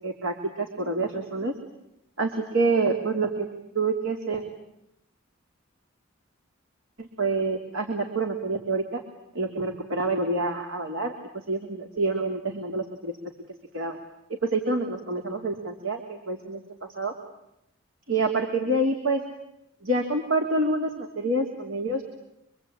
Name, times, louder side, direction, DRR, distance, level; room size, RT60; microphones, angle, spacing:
voice 1, 0.0-1.5 2.2-3.5 3.7-4.4 7.0-9.0 9.3-11.1 11.5-13.1 13.7-14.0 14.4-17.1 18.1-19.2 19.8-22.0, right 2 dB, 70° right, 3 dB, 3.2 m, -27 dB
26.0 x 24.5 x 8.9 m, 0.82 s
head